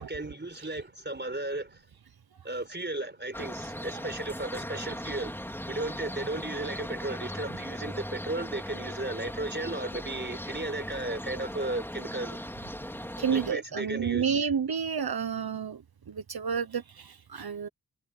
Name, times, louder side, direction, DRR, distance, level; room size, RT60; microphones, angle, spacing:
voice 1, 0.0-1.7 2.4-5.3 5.6-12.4 13.3-14.5, right 2 dB, 30° right, 4.8 m, -35 dB
sound 1, 3.3-13.5, equal, 5° left, 4.2 m, -38 dB
voice 2, 13.2-15.8 16.1-17.7, right 7 dB, 80° right, 1.0 m, -30 dB
wide cardioid pair, 45°, 37 cm